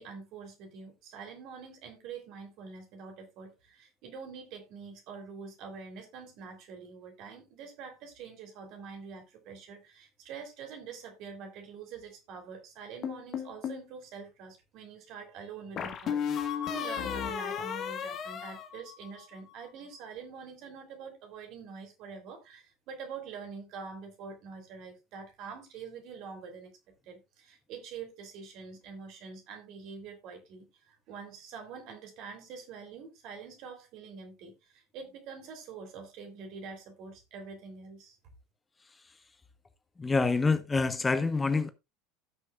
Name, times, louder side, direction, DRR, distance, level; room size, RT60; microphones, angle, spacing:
voice 1, 0.0-26.7 27.0-38.2, right 5 dB, 50° right, 3.3 m, -45 dB
sound 1, 13.0-13.9 15.8-19.4, left 8 dB, 40° left, 1.4 m, -34 dB
voice 2, 40.0-41.7, left 4 dB, 15° left, 0.9 m, -26 dB
16.5 x 6.5 x 2.4 m
figure-of-eight pair, 70°, 0 cm